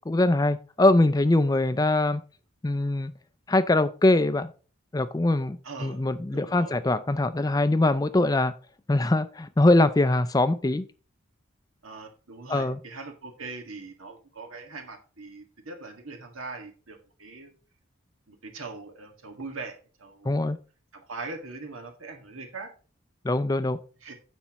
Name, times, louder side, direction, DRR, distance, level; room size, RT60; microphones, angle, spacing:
voice 1, 0.1-2.2 2.6-3.1 3.5-4.5 4.9-8.5 8.9-10.8 12.5-12.8 20.3-20.6 23.2-23.8, left 2 dB, 20° left, 13 dB, 0.4 m, -22 dB
voice 2, 5.6-6.0 6.3-6.8 11.8-17.5 18.3-20.5 20.9-22.7 24.0-24.1, right 3 dB, 90° right, 4 dB, 1.8 m, -41 dB
9.8 x 7.1 x 3.0 m, 0.37 s
head